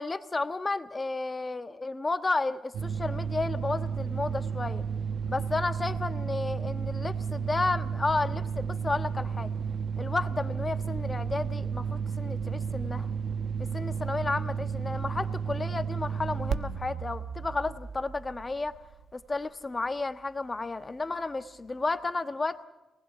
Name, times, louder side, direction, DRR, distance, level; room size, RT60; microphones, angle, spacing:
voice 1, 0.0-4.8 5.3-9.5 10.0-13.1 13.7-18.7 19.1-22.7, left 3 dB, 20° left, 10 dB, 1.3 m, -32 dB
sound 1, 2.7-19.1, right 6 dB, 70° right, 1.0 m, -32 dB
26.0 x 19.5 x 6.9 m, 1.1 s
cardioid pair, 130°, 0 cm